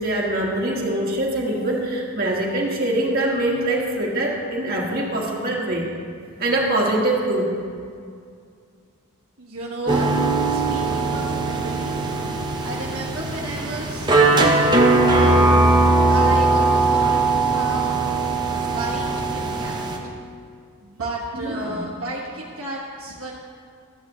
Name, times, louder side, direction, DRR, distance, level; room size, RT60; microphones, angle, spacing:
voice 1, 0.0-5.9 6.4-7.5 21.3-21.8, right 1 dB, 40° right, -3 dB, 1.5 m, -23 dB
voice 2, 9.4-10.1 10.5-12.1 12.6-14.1 14.6-15.5 16.1-17.9 18.5-20.1 20.8-23.4, right 2 dB, 65° right, -4 dB, 1.1 m, -33 dB
sound 1, 9.9-20.0, right 2 dB, 20° right, 0.7 m, -19 dB
13.0 x 9.1 x 3.1 m, 2.2 s
head